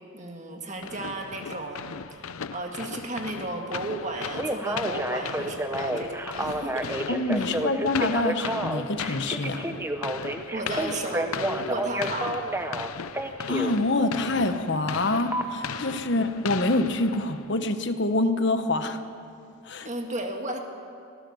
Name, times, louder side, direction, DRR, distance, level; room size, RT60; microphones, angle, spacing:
voice 1, 0.1-1.9 2.2-6.9 7.4-7.6 10.5-12.4 16.0-16.1 19.8-20.6, right 2 dB, 35° right, 3 dB, 1.9 m, -34 dB
sound 1, 0.8-17.6, left 6 dB, 90° left, 0.6 m, -37 dB
Telephone, 4.2-13.7 15.3-15.4, right 1 dB, 10° right, 0.9 m, -30 dB
voice 2, 7.1-9.6 13.5-19.0 19.6-19.9, left 2 dB, 55° left, 9 dB, 1.2 m, -26 dB
25.0 x 16.0 x 7.2 m, 2.5 s
head